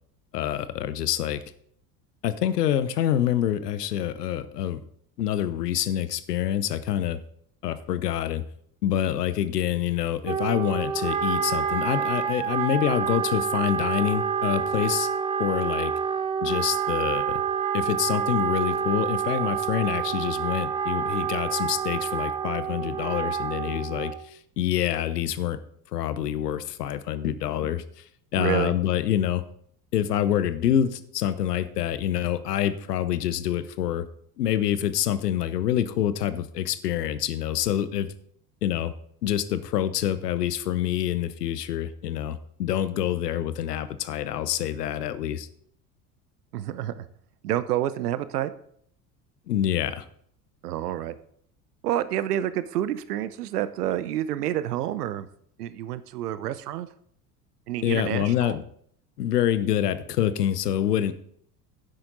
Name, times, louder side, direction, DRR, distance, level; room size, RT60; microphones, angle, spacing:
voice 1, 0.3-1.4 2.2-4.8 5.2-7.2 7.6-8.4 8.8-15.1 15.4-15.9 16.4-17.4 17.7-25.6 25.9-28.0 28.3-29.4 29.9-34.0 34.4-38.1 38.6-38.9 39.2-45.5 49.5-50.1 57.8-58.6 59.2-61.1, left 11 dB, 75° left, 14 dB, 0.8 m, -26 dB
Wind instrument woodwind instrument, 10.2-24.3, right 7 dB, 15° right, 0.3 m, -28 dB
voice 2, 28.3-28.7 46.5-47.1 47.4-48.5 50.6-51.2 51.8-55.3 55.6-56.9 57.7-58.6, right 12 dB, 75° right, 15 dB, 0.8 m, -28 dB
10.5 x 7.7 x 3.9 m, 0.65 s
figure-of-eight pair, 70°, 47 cm